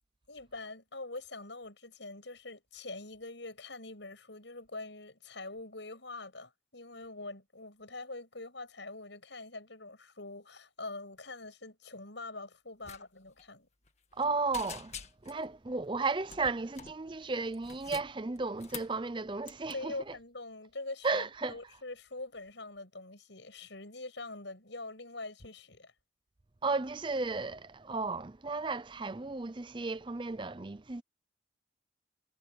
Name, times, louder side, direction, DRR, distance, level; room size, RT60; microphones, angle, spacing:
voice 1, 0.3-13.7 19.7-25.9, left 2 dB, 70° left, 6.4 m, -44 dB
sound 1, 12.8-13.0 13.3-13.4 13.8-14.2 14.5-15.4 16.3-17.0 17.5-19.0 19.4-19.7, left 7 dB, 35° left, 1.9 m, -46 dB
voice 2, 14.1-14.9 15.2-20.1 21.0-21.6 26.6-31.0, right 3 dB, 25° right, 0.5 m, -34 dB
head